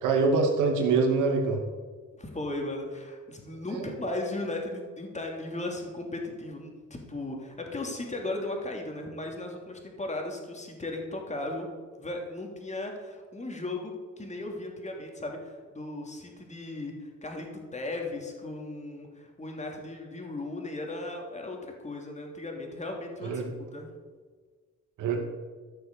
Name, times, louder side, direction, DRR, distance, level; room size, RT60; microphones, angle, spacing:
voice 1, 0.0-1.6 3.7-3.9 23.2-23.5 25.0-25.2, right 4 dB, 90° right, 2 dB, 2.6 m, -24 dB
voice 2, 2.2-6.7 7.1-11.7 12.0-23.3 23.7-23.9, left 2 dB, 25° left, 1 dB, 3.2 m, -36 dB
14.5 x 6.8 x 7.1 m, 1.5 s
cardioid pair, 90°, 30 cm